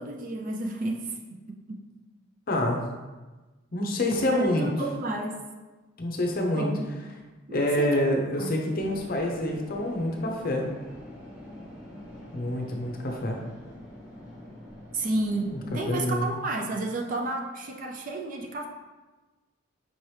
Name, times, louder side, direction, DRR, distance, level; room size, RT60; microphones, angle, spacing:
voice 1, 0.0-1.9 4.3-5.4 6.5-6.9 7.5-8.0 8.4-8.5 14.9-18.7, right 2 dB, 40° right, 2 dB, 0.4 m, -31 dB
voice 2, 2.5-2.8 3.7-4.7 6.0-6.7 7.5-10.6 12.3-13.4 15.5-15.6 15.9-16.3, left 1 dB, 45° left, 0 dB, 0.6 m, -27 dB
sound 1, 8.7-16.3, left 1 dB, 10° right, 0.8 m, -45 dB
5.4 x 2.9 x 3.2 m, 1.2 s
head